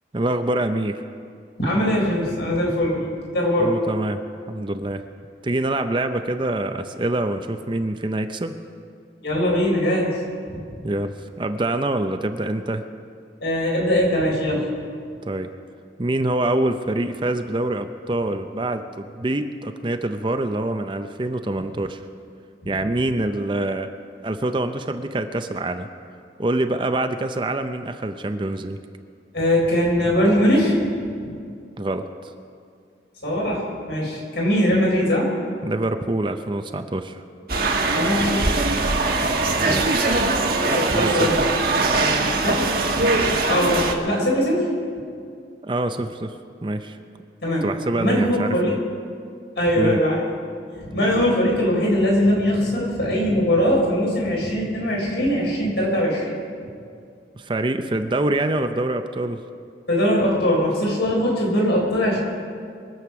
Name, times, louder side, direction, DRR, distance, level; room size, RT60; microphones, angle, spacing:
voice 1, 0.1-1.1 3.6-4.2 4.5-5.0 5.4-8.5 10.8-12.8 15.3-15.5 16.0-22.0 22.7-23.9 24.2-25.9 26.4-28.8 31.8-32.3 35.6-37.2 39.6-40.1 40.9-41.3 45.6-46.4 46.6-47.0 47.6-48.8 49.8-50.0 57.4-59.4, right 2 dB, 25° right, 8 dB, 0.5 m, -25 dB
voice 2, 1.6-3.7 9.2-10.2 10.5-10.6 13.4-14.7 22.6-22.7 29.3-30.8 31.2-31.3 33.2-35.3 37.9-38.9 39.6-39.8 40.6-41.4 41.9-42.7 43.2-44.7 47.4-47.7 48.0-48.7 49.6-50.2 50.7-56.3 59.9-62.2, equal, 70° left, -3 dB, 4.4 m, -21 dB
sound 1, 37.5-43.9, right 3 dB, 55° right, 1.3 m, -21 dB
23.0 x 7.9 x 5.9 m, 2.3 s
head